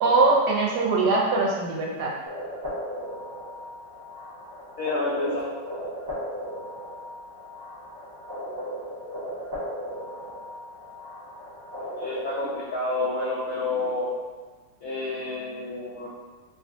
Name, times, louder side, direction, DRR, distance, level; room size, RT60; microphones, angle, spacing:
voice 1, 0.0-2.1, right 3 dB, 75° right, -3 dB, 1.1 m, -22 dB
sound 1, 2.3-12.6, equal, 35° right, 0.8 m, -36 dB
voice 2, 4.8-5.4 10.1-10.3 11.8-14.1 14.8-16.1, left 2 dB, 80° left, -6 dB, 0.7 m, -29 dB
3.4 x 2.3 x 2.6 m, 1.4 s
omnidirectional pair, 2.0 m